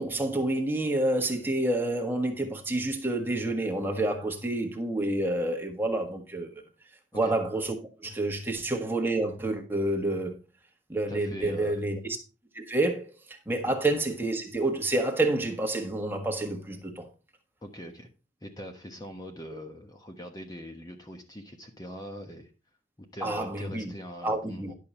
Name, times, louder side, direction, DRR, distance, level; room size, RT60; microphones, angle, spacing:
voice 1, 0.0-6.6 7.1-10.4 10.9-12.2 12.5-17.1 23.2-23.9 24.2-24.7, right 2 dB, 10° right, 1.5 m, -29 dB
voice 2, 11.1-11.8 17.6-18.1 18.4-22.5 23.0-24.7, equal, 20° left, 1.1 m, -42 dB
11.0 x 6.6 x 4.3 m
head